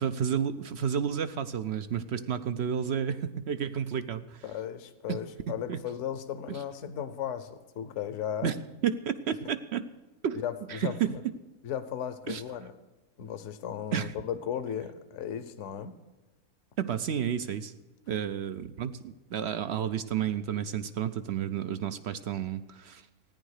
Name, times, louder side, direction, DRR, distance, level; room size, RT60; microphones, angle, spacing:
voice 1, 0.0-4.4 5.1-5.2 5.5-5.8 6.5-6.6 8.4-9.9 10.2-10.4 10.7-11.1 12.3-12.4 13.9-14.1 16.8-17.7 18.1-23.0, right 8 dB, 60° right, 12 dB, 0.7 m, -31 dB
voice 2, 4.4-8.5 9.4-9.5 10.4-11.2 11.6-12.7 13.2-15.9, left 9 dB, 60° left, 10 dB, 1.1 m, -36 dB
14.5 x 10.0 x 6.5 m, 1.1 s
omnidirectional pair, 1.6 m